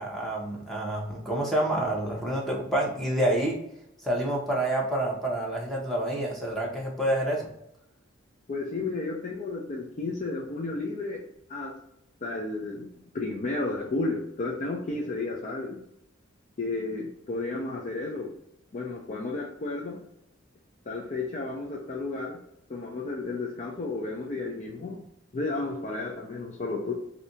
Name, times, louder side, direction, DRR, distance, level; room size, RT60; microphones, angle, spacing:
voice 1, 0.0-3.6 4.0-7.5, right 1 dB, ahead, -3 dB, 0.8 m, -28 dB
voice 2, 8.5-11.2 11.5-11.8 12.2-12.9 13.1-15.8 16.6-18.3 18.7-20.0 20.9-22.4 22.7-25.0 25.3-26.9, left 3 dB, 40° left, -1 dB, 0.5 m, -32 dB
3.2 x 2.8 x 2.7 m, 0.75 s
head